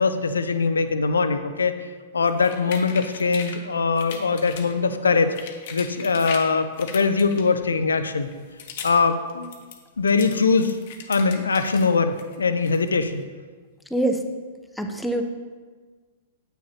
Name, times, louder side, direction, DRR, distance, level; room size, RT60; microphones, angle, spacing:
voice 1, 0.0-1.8 2.1-5.4 5.7-8.3 8.8-9.5 10.0-10.8 11.1-13.3, left 4 dB, 80° left, 10 dB, 0.5 m, -22 dB
sound 1, 2.3-3.6 4.0-4.8 5.1-6.5 6.8-7.7 8.2-9.0 9.3-11.9 12.2-13.1, left 7 dB, 55° left, 1.0 m, -39 dB
voice 2, 14.8-15.3, right 1 dB, 5° left, 4 dB, 0.7 m, -24 dB
9.0 x 8.5 x 2.8 m, 1.5 s
figure-of-eight pair, 105°, 0 cm